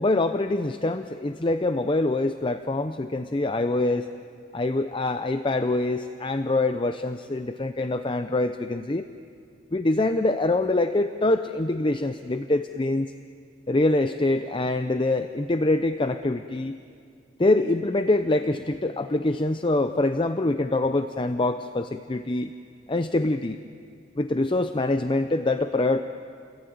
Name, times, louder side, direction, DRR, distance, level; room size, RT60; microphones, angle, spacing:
voice 1, 0.0-4.1 4.5-9.1 9.7-13.1 13.7-16.8 17.4-22.5 22.9-23.6 24.2-26.0, left 2 dB, 30° left, 9 dB, 0.6 m, -24 dB
29.5 x 21.0 x 9.4 m, 2.3 s
head